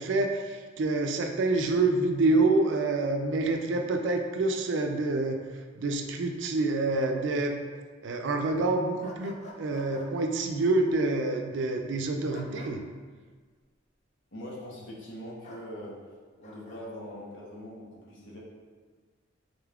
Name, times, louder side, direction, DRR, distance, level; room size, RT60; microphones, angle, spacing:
voice 1, 0.0-5.4 5.8-7.6 8.0-12.8, right 2 dB, 60° right, 4 dB, 0.4 m, -27 dB
sound 1, 9.0-10.1 12.3-12.7 15.4-15.7 16.4-16.8, left 1 dB, 35° left, 0.3 m, -47 dB
voice 2, 14.3-16.0 16.4-18.4, equal, 65° left, -4 dB, 0.9 m, -42 dB
3.9 x 2.3 x 3.4 m, 1.5 s
head